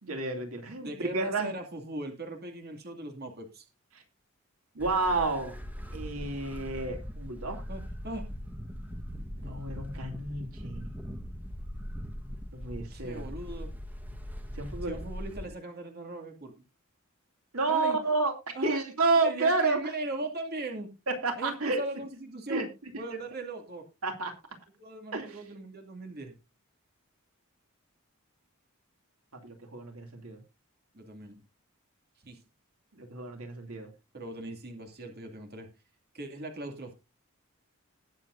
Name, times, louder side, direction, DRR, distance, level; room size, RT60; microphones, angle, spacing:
voice 1, 0.0-1.5 3.9-4.0 4.7-5.6 5.9-7.6 9.4-10.9 12.5-13.3 14.5-15.0 17.5-18.3 18.6-19.9 21.2-21.8 22.5-22.7 24.0-24.3 25.1-25.4 29.4-30.4 32.9-33.9, right 3 dB, 75° right, 4 dB, 2.6 m, -30 dB
voice 2, 0.8-3.7 7.7-8.2 9.4-9.6 12.9-13.7 14.8-16.5 17.7-18.0 18.5-18.8 19.2-20.9 21.4-22.7 23.0-23.9 24.8-26.3 30.9-31.4 32.2-32.4 34.1-35.7 36.1-36.9, right 2 dB, 45° right, 3 dB, 2.5 m, -39 dB
sound 1, 4.8-15.5, equal, 10° right, 1.3 m, -40 dB
20.0 x 7.5 x 2.6 m, 0.26 s
head